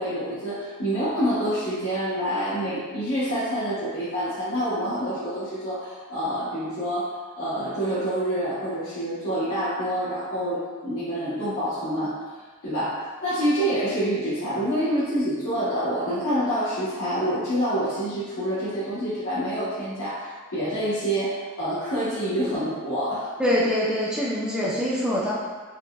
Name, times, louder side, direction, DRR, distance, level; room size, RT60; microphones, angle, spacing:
voice 1, 0.0-12.2 12.6-23.3, equal, 70° left, -13 dB, 0.8 m, -27 dB
voice 2, 23.4-25.3, left 1 dB, 5° right, -7 dB, 0.3 m, -24 dB
3.9 x 2.1 x 2.2 m, 1.4 s
head